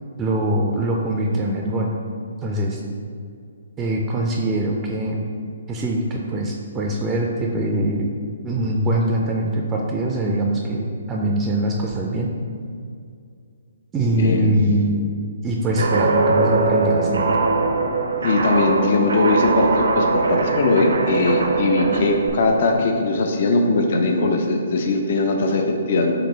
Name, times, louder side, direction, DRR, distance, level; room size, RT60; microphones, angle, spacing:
voice 1, 0.2-1.9 2.4-2.8 3.8-5.3 5.7-8.1 8.4-12.3 13.9-15.1 15.4-17.3, right 1 dB, 15° right, -1 dB, 0.4 m, -22 dB
voice 2, 14.2-14.6 17.6-17.7 18.2-26.1, left 3 dB, 50° left, 3 dB, 0.4 m, -20 dB
Guitar, 15.8-22.3, right 3 dB, 75° right, 0.5 m, -21 dB
4.5 x 2.9 x 3.8 m, 2.3 s
figure-of-eight pair, 135°, 0 cm